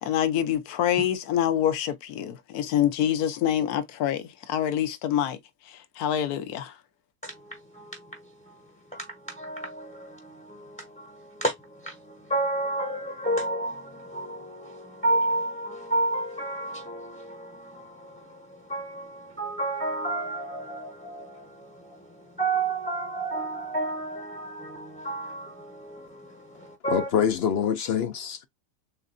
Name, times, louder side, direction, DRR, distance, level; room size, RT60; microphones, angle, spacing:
voice 1, 0.0-5.4 5.7-6.8, left 10 dB, 80° left, 1.2 m, -26 dB
voice 2, 7.2-8.2 8.9-27.1, right 2 dB, 5° left, 0.7 m, -31 dB
voice 3, 26.9-28.5, left 8 dB, 65° left, 0.6 m, -25 dB
7.1 x 2.5 x 2.6 m
omnidirectional pair, 1.6 m